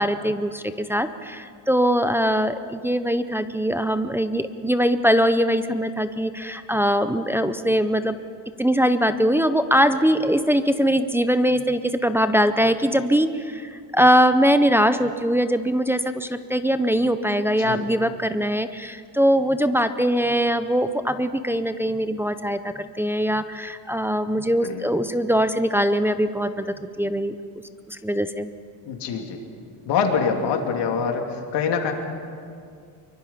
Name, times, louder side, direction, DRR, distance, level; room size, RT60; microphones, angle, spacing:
voice 1, 0.0-8.2 8.6-27.3 27.9-28.5, equal, 5° right, 9 dB, 0.5 m, -22 dB
voice 2, 28.8-29.4 29.9-31.9, left 6 dB, 60° left, 3 dB, 2.9 m, -25 dB
24.0 x 23.5 x 5.7 m, 2.3 s
cardioid pair, 150°, 46 cm